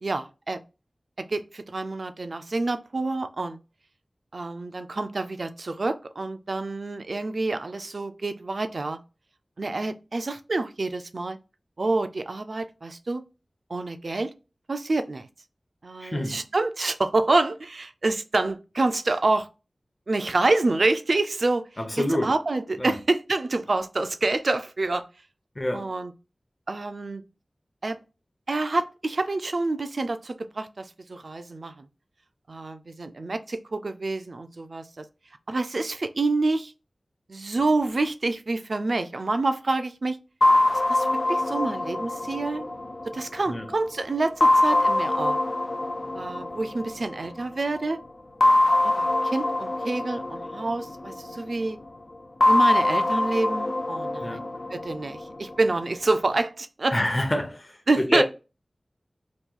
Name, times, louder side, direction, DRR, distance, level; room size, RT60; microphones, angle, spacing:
voice 1, 0.0-0.6 1.2-3.6 4.3-9.0 9.6-11.4 11.8-13.2 13.7-14.3 14.7-15.3 15.8-19.5 20.1-21.7 22.0-25.0 25.7-26.1 26.7-27.2 27.8-28.0 28.5-31.9 32.5-35.1 35.5-36.7 37.3-40.2 40.9-42.7 43.1-45.4 46.1-48.0 48.8-51.8 52.5-54.4 54.7-57.0 57.9-58.2, right 2 dB, 65° right, 0.4 m, -27 dB
voice 2, 16.0-16.4 21.8-22.3 22.8-23.0 25.6-25.9 43.5-43.7 54.2-54.4 56.9-58.2, left 1 dB, 30° left, 0.8 m, -27 dB
sound 1, 40.4-43.7 44.4-47.3 48.4-51.5 52.4-55.5, left 2 dB, 60° left, 0.4 m, -23 dB
3.0 x 2.3 x 3.6 m
wide cardioid pair, 45°, 0 cm